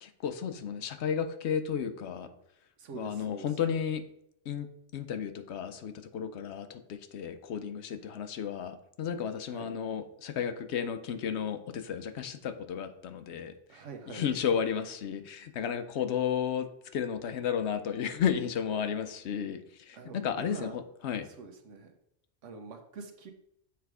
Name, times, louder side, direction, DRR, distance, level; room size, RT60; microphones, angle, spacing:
voice 1, 0.0-2.3 2.9-4.0 4.5-13.8 14.1-21.3, left 8 dB, 70° left, 9 dB, 0.9 m, -33 dB
voice 2, 2.8-3.5 9.5-9.7 13.7-14.2 19.9-20.8 21.4-21.9 22.4-23.3, right 5 dB, 90° right, 5 dB, 1.2 m, -45 dB
7.2 x 3.4 x 4.7 m, 0.74 s
omnidirectional pair, 1.2 m